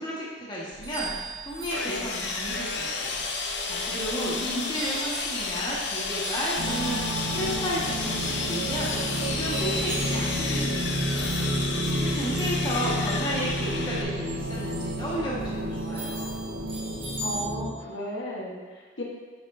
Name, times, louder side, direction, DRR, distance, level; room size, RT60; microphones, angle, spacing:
voice 1, 0.0-3.2 3.7-11.3 11.5-16.3, equal, 25° left, -7 dB, 1.5 m, -33 dB
sound 1, 0.7-17.4, right 2 dB, 30° right, 0.8 m, -41 dB
Sawing, 1.7-14.0, left 4 dB, 70° left, 0.7 m, -32 dB
voice 2, 4.1-4.6 17.2-19.0, left 1 dB, 85° left, -3 dB, 1.3 m, -35 dB
sound 2, 6.6-17.7, right 1 dB, 85° right, 1.1 m, -30 dB
7.4 x 7.3 x 2.7 m, 1.4 s
head